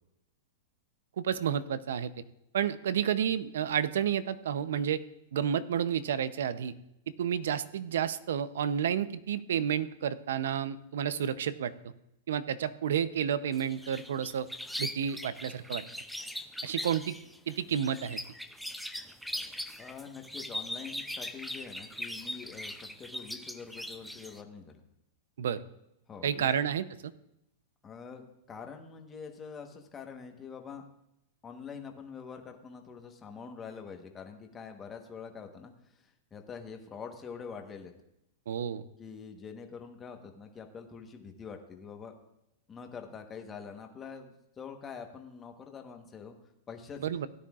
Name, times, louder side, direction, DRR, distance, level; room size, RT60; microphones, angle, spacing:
voice 1, 1.2-2.1 2.5-5.0 5.3-6.7 7.2-11.9 12.3-14.5 14.8-15.8 16.6-17.1 17.5-18.2 25.4-25.6 26.2-27.1 38.5-38.8 47.0-47.3, right 9 dB, 80° right, 15 dB, 0.6 m, -30 dB
sound 1, 13.5-24.4, left 1 dB, ahead, 0.5 m, -40 dB
voice 2, 19.8-24.7 26.1-26.5 27.8-30.8 31.4-37.9 39.0-42.1 42.7-46.3 46.7-47.1, left 6 dB, 15° left, 4 dB, 1.1 m, -45 dB
16.5 x 10.0 x 2.4 m, 0.85 s
supercardioid pair, 155°, 0 cm